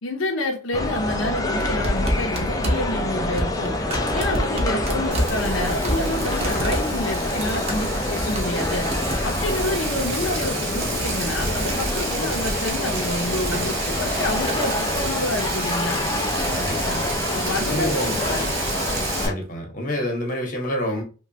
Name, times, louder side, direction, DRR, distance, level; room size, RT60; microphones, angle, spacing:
voice 1, 0.0-3.7 4.1-8.9 9.2-16.0 17.3-18.6, left 2 dB, 80° left, 1 dB, 0.6 m, -28 dB
sound 1, 0.7-19.3, left 1 dB, 20° left, 0.3 m, -26 dB
sound 2, 1.6-13.5 13.8-14.8 15.2-15.9 16.8-17.1 17.9-18.5 19.4-19.5, equal, 30° right, 0.6 m, -31 dB
Frying (food), 5.1-19.3, right 3 dB, 50° right, 1.0 m, -31 dB
voice 2, 16.5-17.1 17.7-18.2 19.2-21.0, equal, 40° left, 1 dB, 0.9 m, -27 dB
3.0 x 2.2 x 2.6 m, 0.35 s
head